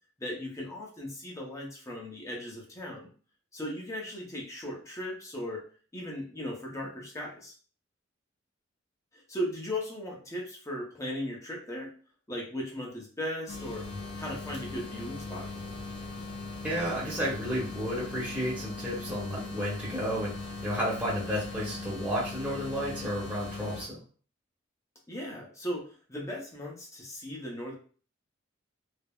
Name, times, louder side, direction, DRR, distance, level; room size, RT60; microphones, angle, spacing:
voice 1, 0.2-3.1 3.5-5.6 5.9-7.6 9.1-11.9 12.3-13.9 14.2-15.5 25.1-27.8, equal, 15° left, -2 dB, 0.6 m, -37 dB
sound 1, 13.5-23.8, left 3 dB, 60° left, 0.7 m, -40 dB
voice 2, 16.6-24.0, equal, 5° right, -7 dB, 0.9 m, -32 dB
3.3 x 2.0 x 2.3 m, 0.41 s
head